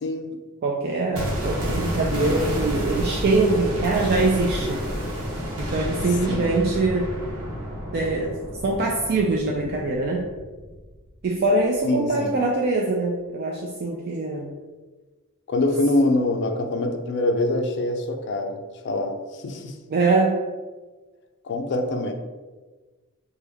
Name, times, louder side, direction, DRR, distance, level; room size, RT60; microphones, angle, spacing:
voice 1, 0.0-0.4 6.3-6.5 11.8-12.4 15.5-19.8 21.4-22.1, left 2 dB, 55° left, 5 dB, 0.4 m, -25 dB
voice 2, 0.6-4.8 5.6-7.1 7.9-8.3 8.6-10.2 11.2-14.5 19.9-20.3, right 3 dB, 45° right, -1 dB, 0.3 m, -23 dB
sound 1, 1.1-11.2 11.4-11.5, equal, 80° right, 0.9 m, -30 dB
3.3 x 2.2 x 3.3 m, 1.3 s
head